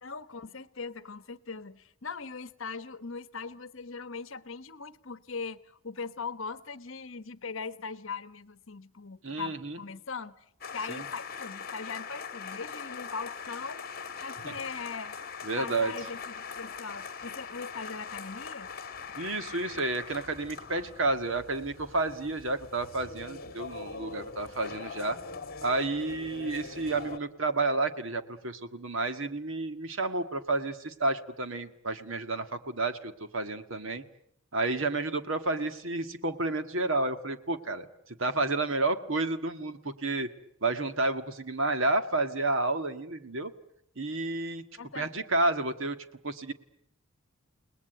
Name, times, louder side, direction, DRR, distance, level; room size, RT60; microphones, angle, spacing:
voice 1, 0.0-10.4 10.7-13.9 14.2-15.2 15.6-18.7 44.8-45.1, left 5 dB, 60° left, 1.2 m, -40 dB
voice 2, 9.2-9.8 14.4-14.5 15.4-15.9 19.2-25.2 25.6-34.0 34.5-37.9 38.2-40.3 40.6-43.5 44.0-44.6 44.9-46.0 46.2-46.5, right 2 dB, 60° right, 1.8 m, -30 dB
sound 1, 10.6-27.2, left 5 dB, 45° left, 2.0 m, -42 dB
29.5 x 20.0 x 9.1 m
head